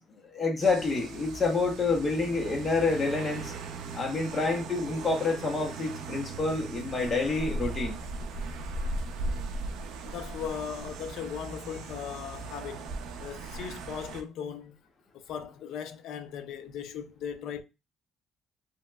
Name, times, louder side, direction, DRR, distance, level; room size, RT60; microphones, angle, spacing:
voice 1, 0.3-3.5 3.9-8.0, left 3 dB, 20° left, 0.7 m, -28 dB
sound 1, 0.6-14.2, right 3 dB, 75° right, 0.4 m, -38 dB
voice 2, 10.0-12.9 13.2-14.8 15.1-17.6, left 8 dB, 70° left, 0.4 m, -38 dB
2.9 x 2.8 x 2.2 m
cardioid pair, 165°, 0 cm